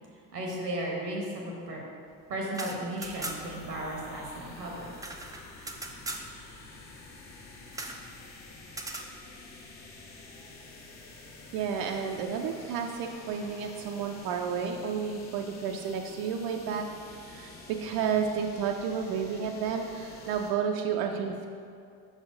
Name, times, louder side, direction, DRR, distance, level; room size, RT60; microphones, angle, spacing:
voice 1, 0.3-1.8 2.3-4.9, right 1 dB, 85° right, -1 dB, 1.1 m, -35 dB
sound 1, 2.5-3.7 3.9-4.0 4.3-6.3 7.7-8.0 8.7-9.1, right 2 dB, 10° right, 0.5 m, -39 dB
sound 2, 3.0-20.5, left 3 dB, 65° left, 1.1 m, -49 dB
voice 2, 11.5-21.5, right 7 dB, 55° right, 3 dB, 0.6 m, -31 dB
6.0 x 4.1 x 5.0 m, 2.4 s
figure-of-eight pair, 50°, 47 cm